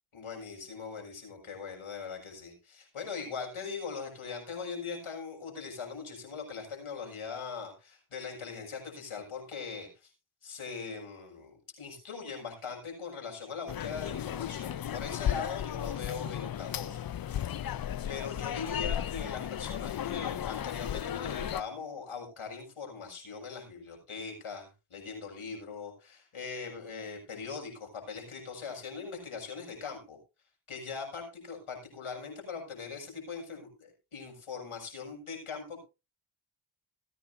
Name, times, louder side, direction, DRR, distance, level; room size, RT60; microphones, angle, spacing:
voice 1, 0.1-10.1 10.4-17.1 17.7-17.8 18.1-30.2 30.7-35.8, left 5 dB, 80° left, 2 dB, 6.4 m, -41 dB
sound 1, 13.7-21.6, left 10 dB, 45° left, 0.6 m, -35 dB
21.0 x 9.7 x 2.7 m, 0.28 s
cardioid pair, 40°, 49 cm